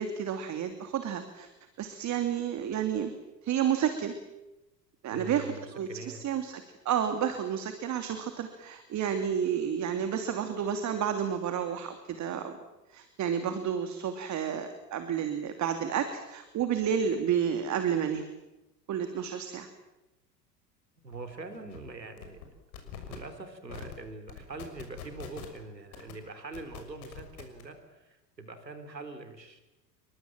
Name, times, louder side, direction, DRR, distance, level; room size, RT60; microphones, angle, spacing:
voice 1, 0.0-1.5 1.8-3.1 3.4-4.1 5.0-12.6 12.9-18.3 18.9-19.7, right 8 dB, 35° right, 8 dB, 2.8 m, -31 dB
voice 2, 5.1-6.2 21.0-22.5 23.1-29.6, right 3 dB, 85° right, 8 dB, 3.9 m, -43 dB
sound 1, 21.1-21.2 21.5-21.8 22.2-22.5 22.7-23.2 23.7-23.9 24.3-25.6 25.9-26.1 26.5-27.6, left 9 dB, 60° left, 6.4 m, -43 dB
29.0 x 23.5 x 7.5 m, 1.0 s
figure-of-eight pair, 80°, 49 cm